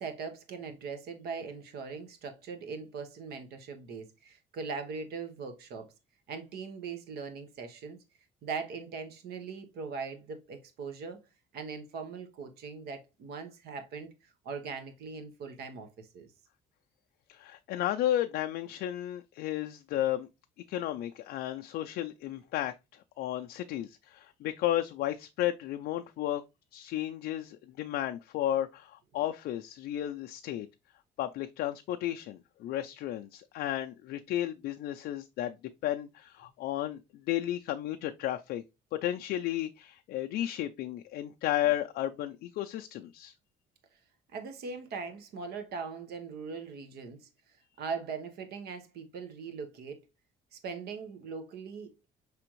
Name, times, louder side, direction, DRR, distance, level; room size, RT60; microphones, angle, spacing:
voice 1, 0.0-5.9 6.3-8.0 8.4-11.2 11.5-14.1 14.4-16.3 44.3-47.3 47.8-50.0 50.5-52.0, right 5 dB, 70° right, 1.1 m, -40 dB
voice 2, 17.3-20.3 20.7-26.4 26.7-30.7 31.2-35.6 35.8-38.6 38.9-43.3, left 13 dB, 70° left, 0.4 m, -33 dB
4.9 x 3.4 x 3.0 m
cardioid pair, 110°, 17 cm